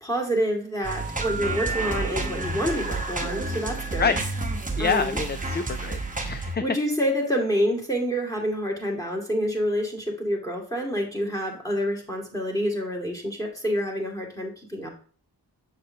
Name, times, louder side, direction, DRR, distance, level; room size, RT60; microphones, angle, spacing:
voice 1, 0.0-4.2 4.8-5.2 6.6-14.9, equal, 10° left, 0 dB, 2.2 m, -27 dB
sound 1, 0.8-6.6, right 3 dB, 20° right, 1.1 m, -30 dB
voice 2, 4.8-6.6, left 5 dB, 25° left, 11 dB, 0.4 m, -27 dB
7.4 x 6.8 x 2.8 m, 0.43 s
wide cardioid pair, 80°, 40 cm